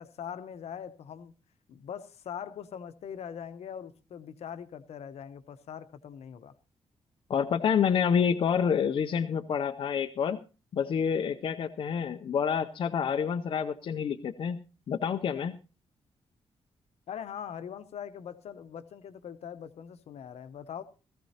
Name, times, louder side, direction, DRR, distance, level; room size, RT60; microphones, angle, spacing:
voice 1, 0.0-1.3 1.7-6.5 17.1-20.8, left 8 dB, 70° left, 0.9 m, -42 dB
voice 2, 7.3-10.4 10.7-14.6 14.9-15.6, left 7 dB, 50° left, 0.6 m, -28 dB
18.0 x 14.5 x 2.8 m
wide cardioid pair, 175°, 11 cm